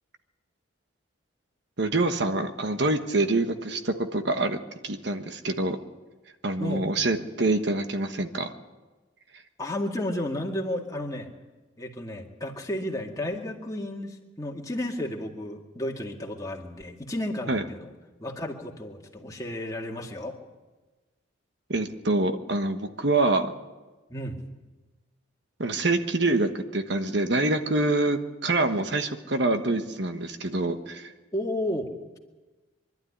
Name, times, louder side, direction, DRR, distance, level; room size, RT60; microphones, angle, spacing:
voice 1, 1.8-4.6 4.8-5.8 6.4-8.5 17.5-17.6 21.7-23.5 25.6-31.1, right 2 dB, 55° right, 7 dB, 1.3 m, -26 dB
voice 2, 9.6-11.3 11.8-17.9 18.2-20.3 24.1-24.4 31.3-31.9, left 1 dB, 15° left, 0 dB, 2.1 m, -32 dB
24.5 x 12.0 x 9.9 m, 1.2 s
head